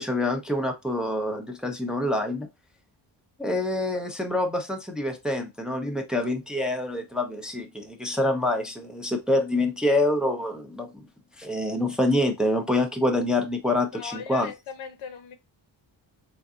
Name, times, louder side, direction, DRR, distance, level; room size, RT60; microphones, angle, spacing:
voice 1, 0.0-2.5 3.4-11.1 11.4-14.5, left 1 dB, ahead, 0.5 m, -26 dB
voice 2, 13.9-15.4, left 7 dB, 80° left, 0.9 m, -38 dB
3.8 x 2.6 x 2.4 m
cardioid pair, 95°, 48 cm